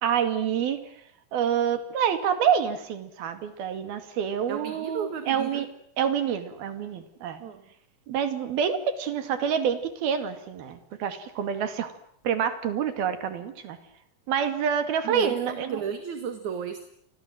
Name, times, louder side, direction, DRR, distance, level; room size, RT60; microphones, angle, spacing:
voice 1, 0.0-0.8 1.3-5.7 6.0-7.4 8.1-12.0 12.2-13.8 14.3-15.8, right 8 dB, 75° right, 10 dB, 4.2 m, -27 dB
voice 2, 4.5-5.6 7.4-7.6 15.0-16.8, right 7 dB, 55° right, 8 dB, 3.0 m, -32 dB
29.5 x 24.0 x 7.8 m, 0.67 s
omnidirectional pair, 4.4 m